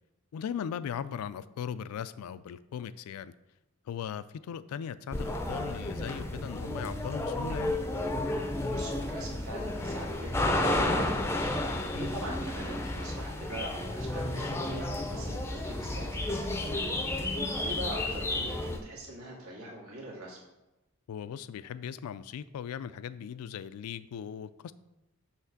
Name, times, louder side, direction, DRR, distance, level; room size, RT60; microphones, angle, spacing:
voice 1, 0.3-3.3 3.9-7.7 11.9-12.1 21.1-24.7, left 8 dB, 90° left, 16 dB, 0.3 m, -38 dB
sound 1, 5.1-18.8, left 1 dB, 10° left, 0.4 m, -32 dB
voice 2, 8.6-11.5 11.9-16.8 17.6-20.4, right 1 dB, 80° right, -4 dB, 1.9 m, -42 dB
5.8 x 3.2 x 5.8 m, 1.0 s
head